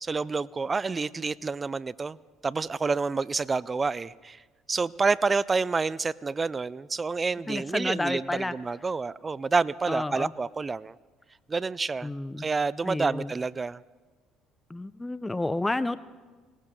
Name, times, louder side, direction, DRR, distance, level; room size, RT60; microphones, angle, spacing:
voice 1, 0.0-2.2 2.4-4.4 4.7-10.9 11.5-12.1 12.4-13.8, right 4 dB, 30° right, 21 dB, 0.4 m, -28 dB
voice 2, 7.5-8.5 9.9-10.3 12.0-12.4 12.9-13.3 14.7-16.0, left 2 dB, 15° left, 14 dB, 0.7 m, -30 dB
19.5 x 18.5 x 3.9 m, 1.3 s
hypercardioid pair, 60°, 0 cm